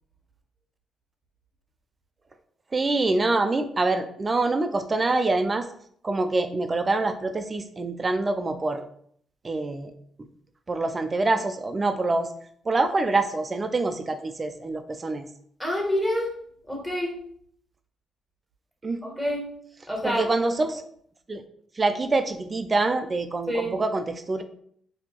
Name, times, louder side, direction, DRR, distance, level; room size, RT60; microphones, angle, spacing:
voice 1, 2.7-5.7 6.0-8.8 9.4-9.9 10.7-12.3 12.7-15.3 18.8-19.2 20.0-20.9 21.3-21.4 21.8-24.4, right 3 dB, 30° right, 8 dB, 0.4 m, -25 dB
voice 2, 15.6-16.3 16.7-17.2 19.0-19.5 19.9-20.2 23.5-23.7, equal, 10° left, -2 dB, 1.4 m, -27 dB
4.2 x 2.8 x 2.9 m, 0.64 s
cardioid pair, 90°, 0 cm